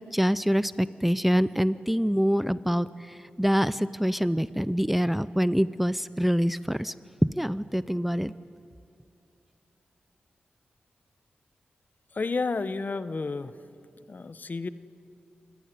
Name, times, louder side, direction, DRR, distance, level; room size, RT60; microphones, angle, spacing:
voice 1, 0.1-6.9 7.2-8.3, equal, 5° right, 16 dB, 0.5 m, -25 dB
voice 2, 12.1-13.6 14.1-14.7, left 4 dB, 50° left, 14 dB, 0.9 m, -31 dB
26.5 x 16.0 x 9.6 m, 2.7 s
cardioid pair, 45°, 4 cm